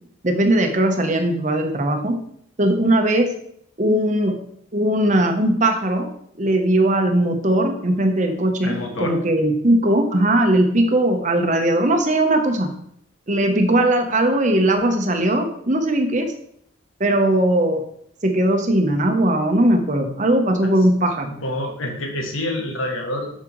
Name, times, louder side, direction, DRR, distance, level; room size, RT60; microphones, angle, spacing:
voice 1, 0.2-2.2 2.6-3.3 3.8-4.4 4.7-6.1 6.4-12.7 13.3-16.3 17.0-17.8 18.2-21.3, right 1 dB, 40° right, 5 dB, 0.9 m, -19 dB
voice 2, 8.6-9.2 20.6-20.7 21.3-23.3, left 1 dB, 85° left, 1 dB, 1.4 m, -27 dB
7.2 x 6.4 x 3.1 m, 0.68 s
head